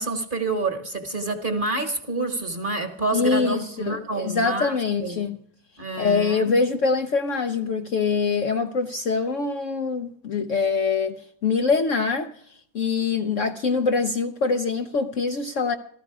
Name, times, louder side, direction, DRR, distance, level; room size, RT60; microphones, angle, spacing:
voice 1, 0.0-4.7 5.0-5.3 5.8-6.5, right 3 dB, 30° right, 1.4 m, -28 dB
voice 2, 3.1-5.4 6.0-11.2 11.4-15.7, left 4 dB, 60° left, 0.9 m, -24 dB
15.0 x 13.5 x 4.8 m
omnidirectional pair, 1.9 m